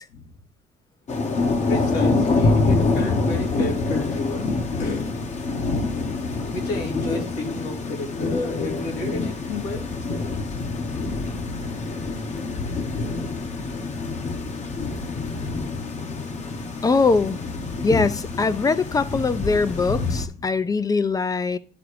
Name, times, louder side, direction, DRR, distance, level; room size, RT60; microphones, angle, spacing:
Thunder / Rain, 1.1-20.3, left 3 dB, 45° left, 1.3 m, -26 dB
voice 1, 1.7-4.5 4.8-5.2 6.2-10.1 20.4-20.5, left 2 dB, 80° left, 2.8 m, -32 dB
voice 2, 16.8-17.4 17.8-21.6, left 4 dB, 20° left, 0.6 m, -22 dB
10.5 x 3.8 x 4.8 m
cardioid pair, 110°, 17 cm